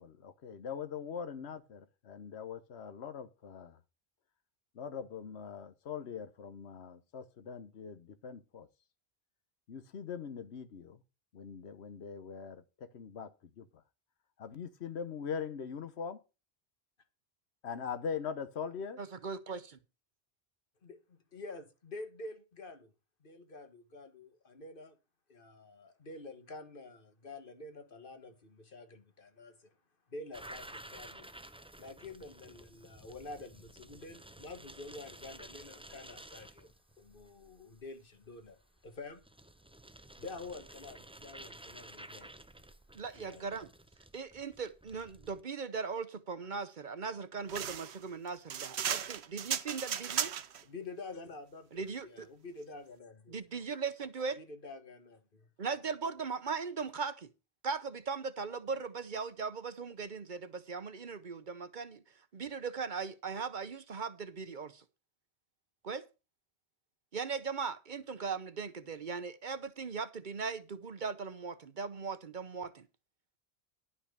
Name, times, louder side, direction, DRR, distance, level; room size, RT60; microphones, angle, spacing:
voice 1, 0.0-3.8 4.7-8.7 9.7-11.0 11.3-13.7 14.4-16.2 17.6-19.0, left 6 dB, 85° left, 1.2 m, -42 dB
voice 2, 19.0-19.8 42.9-43.7 44.1-50.3 51.7-52.3 53.3-54.4 55.6-57.3 57.6-62.0 62.3-64.8 65.8-66.0 67.1-72.8, right 5 dB, 50° right, 0.9 m, -39 dB
voice 3, 20.8-22.9 23.2-25.0 25.3-29.7 30.1-31.3 31.8-39.3 40.2-42.3 43.1-43.7 50.6-53.4 54.4-55.5, left 3 dB, 55° left, 1.6 m, -48 dB
sound 1, 30.3-45.4, right 1 dB, 10° right, 0.4 m, -53 dB
sound 2, 47.5-50.6, right 8 dB, 85° right, 1.1 m, -36 dB
11.0 x 5.7 x 6.6 m
omnidirectional pair, 1.1 m